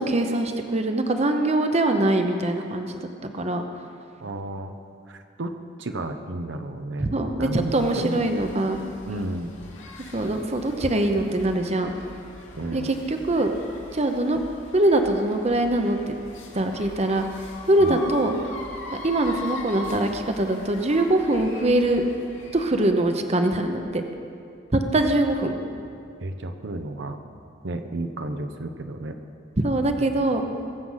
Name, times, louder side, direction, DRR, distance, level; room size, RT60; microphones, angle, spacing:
voice 1, 0.0-3.0 3.3-3.6 7.0-8.9 10.1-12.0 12.7-13.5 13.9-14.4 14.7-16.1 16.5-17.2 17.7-18.4 19.0-22.0 22.5-24.0 24.7-25.5 29.6-30.4, right 1 dB, 35° right, 5 dB, 0.8 m, -23 dB
voice 2, 4.2-4.8 5.1-7.1 7.4-8.2 9.1-9.6 12.6-12.9 17.8-18.0 26.2-27.2 27.6-29.2, right 2 dB, 65° right, 6 dB, 0.8 m, -32 dB
sound 1, 7.7-22.6, left 2 dB, 75° left, 2.6 m, -41 dB
21.0 x 7.8 x 5.7 m, 2.4 s
head